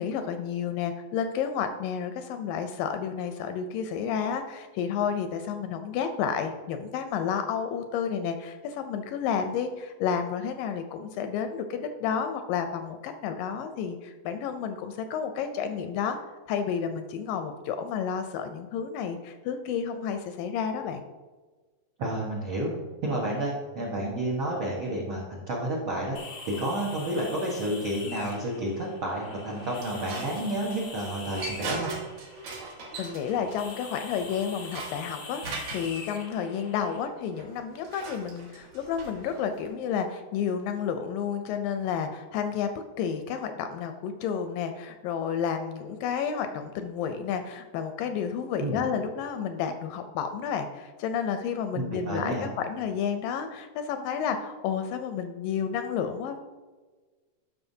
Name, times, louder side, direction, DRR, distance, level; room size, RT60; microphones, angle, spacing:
voice 1, 0.0-16.2 16.5-21.0 33.0-42.7 43.0-56.4, left 7 dB, 80° left, 7 dB, 2.0 m, -31 dB
voice 2, 22.0-22.7 23.0-26.2 26.5-31.9 48.6-48.8 51.7-52.5, right 1 dB, 75° right, -4 dB, 1.2 m, -30 dB
sound 1, 26.1-37.0, left 3 dB, 60° left, 1.2 m, -44 dB
sound 2, 29.5-36.0 37.3-39.7, right 3 dB, 60° right, 2.2 m, -40 dB
12.5 x 5.5 x 2.7 m, 1.3 s
omnidirectional pair, 4.2 m